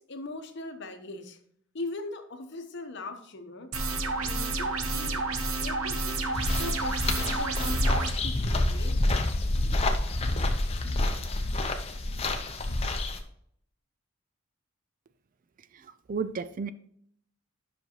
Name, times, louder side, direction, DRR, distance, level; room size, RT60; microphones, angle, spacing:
voice 1, 0.0-1.4 1.7-5.2 5.6-9.0, left 2 dB, 55° left, 6 dB, 0.9 m, -40 dB
sound 1, 3.7-8.1, right 3 dB, 80° right, 0.9 m, -30 dB
sound 2, 6.3-13.2, left 2 dB, 30° left, 0.7 m, -28 dB
voice 2, 15.7-16.7, right 5 dB, 40° right, 13 dB, 0.3 m, -33 dB
10.5 x 6.1 x 2.9 m, 0.68 s
head